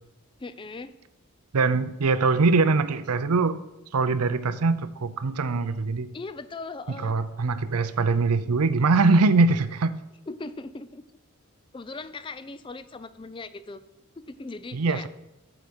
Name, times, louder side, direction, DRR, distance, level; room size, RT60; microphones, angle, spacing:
voice 1, 0.4-0.9 6.1-7.1 10.3-11.0 11.7-13.8 14.2-15.1, left 3 dB, 20° left, 13 dB, 0.4 m, -39 dB
voice 2, 1.5-3.6 3.9-6.1 6.9-9.9 14.7-15.1, right 3 dB, 90° right, 13 dB, 0.6 m, -22 dB
13.5 x 5.0 x 6.1 m, 0.94 s
head